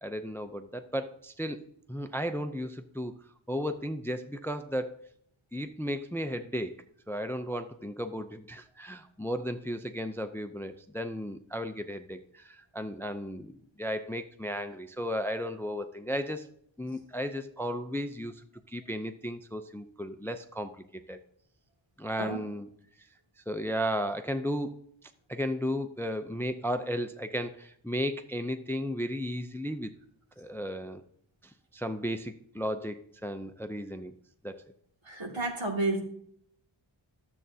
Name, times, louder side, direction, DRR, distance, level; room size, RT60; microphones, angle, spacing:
voice 1, 0.0-1.6 1.9-3.1 3.5-5.0 5.5-6.7 7.1-16.5 16.8-21.2 22.0-22.7 23.5-24.7 25.3-29.9 30.4-31.0 31.7-34.2 34.4-34.6, equal, 5° left, 9 dB, 0.5 m, -34 dB
voice 2, 35.1-36.0, right 2 dB, 70° right, -1 dB, 2.3 m, -30 dB
12.5 x 7.5 x 2.7 m, 0.69 s
wide cardioid pair, 55°, 48 cm